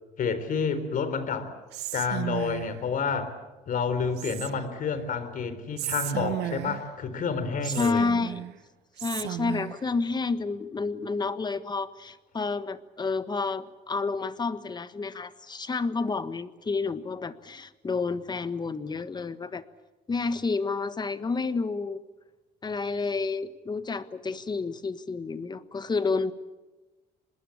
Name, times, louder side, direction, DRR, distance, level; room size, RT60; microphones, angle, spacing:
voice 1, 0.2-1.5 1.9-3.3 3.7-8.1, left 5 dB, 55° left, 11 dB, 3.9 m, -29 dB
Whispering, 1.7-2.8 4.2-4.9 5.8-7.0 7.6-8.6 9.0-9.8, right 15 dB, 85° right, 0.9 m, -34 dB
voice 2, 7.6-8.5 9.0-19.6 20.1-22.0 22.6-26.3, left 4 dB, 25° left, 12 dB, 1.4 m, -30 dB
25.5 x 21.0 x 8.7 m, 1.2 s
cardioid pair, 110°, 17 cm